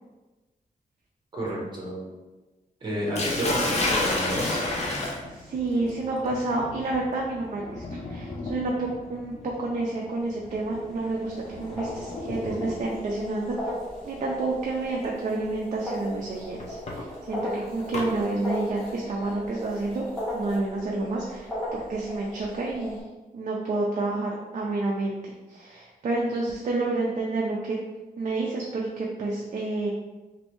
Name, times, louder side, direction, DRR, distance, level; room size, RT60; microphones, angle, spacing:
voice 1, 1.3-2.0 2.8-5.0, right 1 dB, 30° right, -4 dB, 1.0 m, -32 dB
Sink (filling or washing), 3.2-13.1 14.2-14.5 15.0-15.1 16.6-18.1, left 2 dB, 45° left, 0.6 m, -31 dB
voice 2, 5.3-9.3 9.6-13.7 14.0-20.1 20.3-23.0 23.3-27.8 28.2-29.9, right 2 dB, 55° right, -2 dB, 0.4 m, -29 dB
sound 1, 10.0-23.0, left 1 dB, 5° left, 1.1 m, -37 dB
3.2 x 2.6 x 3.0 m, 1.2 s
wide cardioid pair, 145°, 15 cm